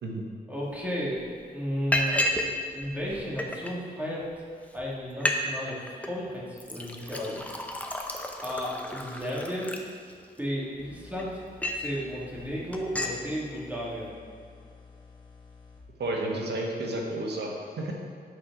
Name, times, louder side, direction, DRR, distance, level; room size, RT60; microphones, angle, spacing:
voice 1, 0.5-1.2 1.5-2.3 2.7-4.3 4.7-7.4 8.4-9.7 10.4-11.4 11.7-14.1, equal, 10° right, -5 dB, 2.2 m, -33 dB
Liquid, 0.7-0.8 1.2-1.4 1.9-2.5 2.8-3.7 4.4-4.5 4.8-4.9 5.1-5.4 5.7-6.1 6.6-10.4 10.9-11.9 12.3-12.5 12.7-13.2, left 1 dB, 10° left, 0.7 m, -31 dB
sound 1, 10.8-15.8, left 4 dB, 25° left, 1.8 m, -52 dB
voice 2, 16.0-17.9, right 1 dB, 90° right, 0 dB, 1.4 m, -31 dB
8.4 x 4.9 x 6.1 m, 2.3 s
wide cardioid pair, 110°, 17 cm